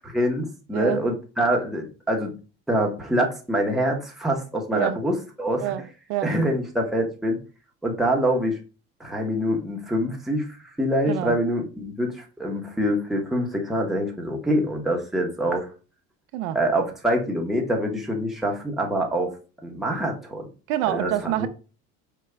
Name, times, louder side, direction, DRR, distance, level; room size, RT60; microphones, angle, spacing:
voice 1, 0.1-2.3 2.7-5.7 6.2-7.4 7.8-8.6 9.0-15.7 16.5-19.3 19.6-20.5 20.9-21.5, equal, ahead, 0.7 m, -25 dB
voice 2, 5.6-6.3 11.1-11.4 16.3-16.6 20.7-21.5, right 13 dB, 70° right, 0.4 m, -27 dB
4.8 x 2.2 x 3.2 m
cardioid pair, 140°, 31 cm